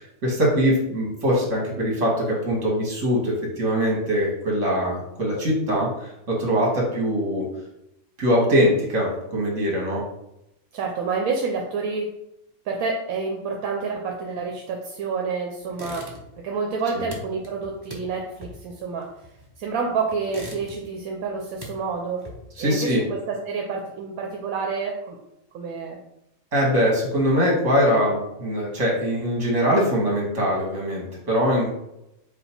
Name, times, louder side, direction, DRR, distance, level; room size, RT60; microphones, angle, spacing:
voice 1, 0.0-7.5 8.2-10.0 16.9-17.1 22.6-23.0 26.5-31.7, equal, 60° right, -2 dB, 1.8 m, -22 dB
voice 2, 10.7-12.1 12.7-16.1 16.4-19.1 19.6-22.2 22.6-25.2 25.5-26.0, right 4 dB, 85° right, 1 dB, 1.1 m, -28 dB
sound 1, 15.7-16.5 16.7-19.7 20.1-21.0 21.3-22.7, equal, 25° right, 0.5 m, -41 dB
5.1 x 2.2 x 4.3 m, 0.85 s
omnidirectional pair, 1.5 m